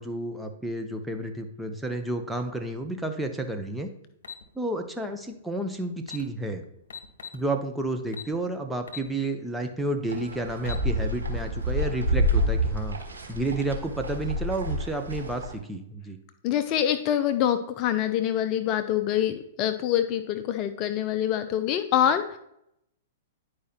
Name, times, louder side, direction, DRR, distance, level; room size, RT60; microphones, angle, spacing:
voice 1, 0.0-3.9 4.5-6.6 7.3-13.0 13.3-16.2, right 2 dB, 5° right, 4 dB, 0.9 m, -31 dB
sound 1, 4.2-4.4 5.6-5.7 6.0-6.2 6.9-7.4 8.1-8.3 8.9-9.1 9.5-9.6 10.4-10.9, left 7 dB, 70° left, 1.0 m, -39 dB
sound 2, 10.1-15.5, equal, 90° right, 1.5 m, -28 dB
voice 2, 16.4-22.4, left 10 dB, 40° left, 9 dB, 0.6 m, -25 dB
10.5 x 4.9 x 2.9 m, 0.75 s
hypercardioid pair, 115°, 0 cm